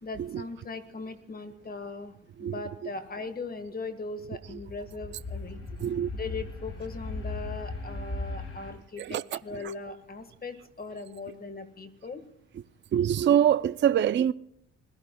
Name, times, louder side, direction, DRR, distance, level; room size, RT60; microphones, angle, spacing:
voice 1, 0.0-5.6 6.1-12.2, left 3 dB, 30° left, 1.6 m, -39 dB
sound 1, 4.3-8.7, left 2 dB, 50° left, 7.8 m, -37 dB
voice 2, 12.9-14.3, right 10 dB, 40° right, 0.4 m, -23 dB
26.0 x 17.0 x 2.3 m
cardioid pair, 90°, 30 cm